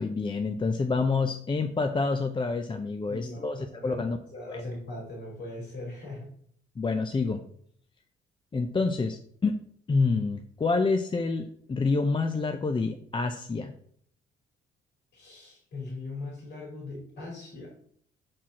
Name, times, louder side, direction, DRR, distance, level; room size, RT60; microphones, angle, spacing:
voice 1, 0.0-4.2 4.5-4.6 6.8-7.4 8.5-9.6 9.9-13.7, left 4 dB, 25° left, 6 dB, 0.6 m, -28 dB
voice 2, 3.1-6.3 15.1-17.8, left 2 dB, 65° left, -2 dB, 2.8 m, -40 dB
5.9 x 4.3 x 6.2 m, 0.64 s
cardioid pair, 90°, 20 cm